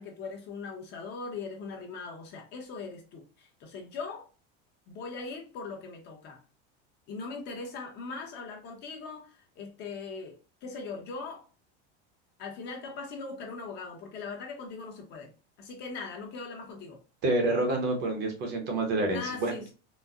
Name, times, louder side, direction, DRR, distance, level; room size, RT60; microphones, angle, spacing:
voice 1, 0.0-4.3 4.9-6.4 7.1-11.4 12.4-15.3 15.6-17.0 19.1-19.7, left 4 dB, 35° left, 0.9 m, -40 dB
voice 2, 17.2-19.7, right 2 dB, 35° right, 0.8 m, -28 dB
4.1 x 2.1 x 2.4 m
supercardioid pair, 165°, 30 cm